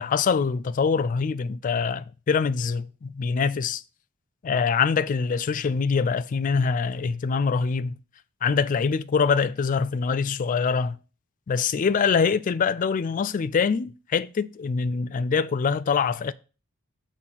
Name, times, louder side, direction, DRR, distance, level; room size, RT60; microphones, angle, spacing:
voice 1, 0.0-3.8 4.4-7.9 8.4-11.0 11.5-16.3, left 5 dB, 40° left, 0.3 m, -24 dB
6.2 x 3.8 x 5.7 m
head